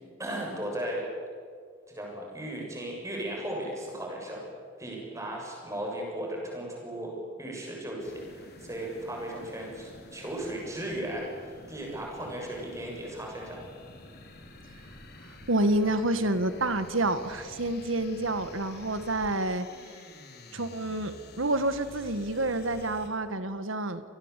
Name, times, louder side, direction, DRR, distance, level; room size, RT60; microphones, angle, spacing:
voice 1, 0.2-1.1 1.9-4.4 4.8-7.1 7.4-13.6, right 1 dB, 15° right, -1 dB, 7.2 m, -36 dB
sound 1, 8.0-23.1, left 2 dB, 50° left, 3.2 m, -49 dB
voice 2, 15.5-19.7 20.5-24.0, right 1 dB, 90° right, 11 dB, 1.8 m, -28 dB
27.5 x 19.0 x 8.5 m, 2.1 s
head